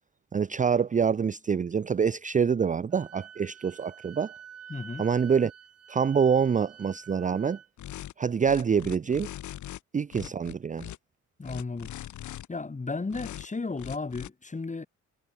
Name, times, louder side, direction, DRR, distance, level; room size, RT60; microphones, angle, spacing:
voice 1, 0.3-4.3 5.0-5.5 5.9-7.6 8.2-9.3 9.9-10.8, right 6 dB, 25° right, 0.6 m, -26 dB
Wind instrument woodwind instrument, 2.9-7.7, right 8 dB, 55° right, 3.7 m, -48 dB
voice 2, 4.7-5.1 11.4-11.9 12.5-14.9, left 3 dB, 25° left, 6.1 m, -34 dB
sound 1, 7.8-8.1 8.4-9.8 10.1-11.0 11.4-12.5 13.1-13.5 13.8-14.3, left 13 dB, 75° left, 2.3 m, -40 dB
cardioid pair, 90°, 30 cm